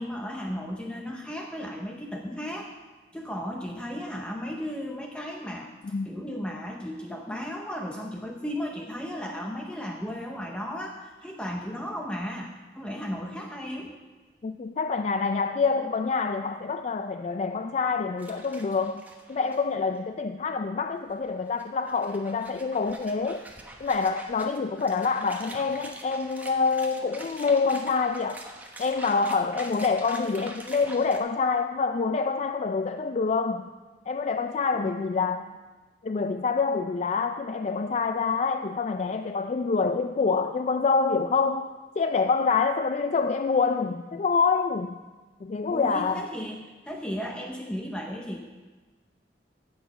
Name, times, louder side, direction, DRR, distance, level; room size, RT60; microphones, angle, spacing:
voice 1, 0.0-2.7 3.1-5.7 6.1-13.9 34.7-34.9 45.7-48.4, equal, 5° left, 1 dB, 0.7 m, -35 dB
voice 2, 14.4-23.5 23.8-28.4 28.8-33.6 34.1-35.5 36.0-45.0 45.4-46.3, left 4 dB, 40° left, 8 dB, 0.3 m, -26 dB
sound 1, 18.2-19.6 19.9-20.0 21.1-31.2, right 1 dB, 10° right, 1.1 m, -45 dB
16.0 x 6.4 x 5.2 m, 1.3 s
head